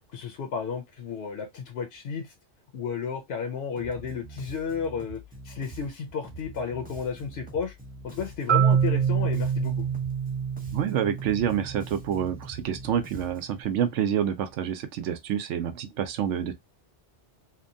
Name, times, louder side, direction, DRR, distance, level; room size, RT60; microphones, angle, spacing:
voice 1, 0.1-2.3 2.7-7.7 8.0-9.8, left 6 dB, 65° left, 0.8 m, -33 dB
Bass guitar, 3.8-13.6, right 1 dB, 10° right, 0.5 m, -45 dB
Marimba xylophone, 8.5-12.4, right 8 dB, 50° right, 0.6 m, -26 dB
voice 2, 10.7-16.5, right 9 dB, 85° right, 0.9 m, -28 dB
2.8 x 2.2 x 2.6 m
omnidirectional pair, 1.2 m